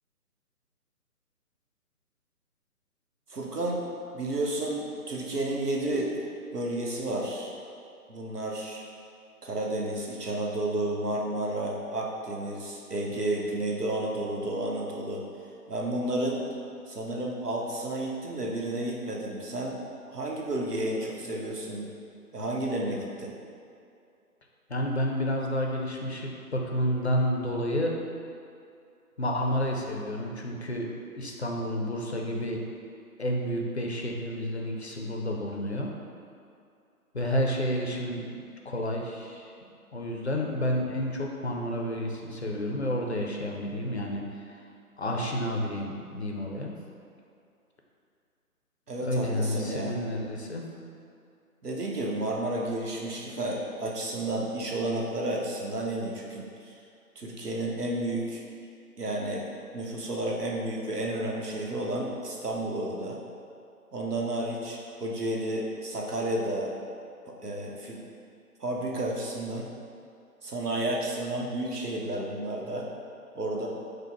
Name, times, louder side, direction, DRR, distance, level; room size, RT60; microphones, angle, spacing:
voice 1, 3.3-3.9 4.1-6.2 6.5-7.5 8.1-8.8 9.4-15.2 15.7-16.4 16.9-19.8 20.1-21.9 22.3-23.3 48.9-50.0 51.6-56.8 57.2-58.4 59.0-59.5 59.7-63.2 63.9-66.7 67.3-68.0 68.6-69.7 70.4-72.9 73.3-73.7, right 1 dB, 90° right, -1 dB, 0.9 m, -31 dB
voice 2, 24.7-28.0 29.2-30.9 31.1-32.6 33.2-35.9 37.1-44.4 45.0-46.7 49.0-50.6, equal, 50° left, 0 dB, 0.5 m, -30 dB
5.1 x 2.1 x 4.4 m, 2.5 s
figure-of-eight pair, 150°, 46 cm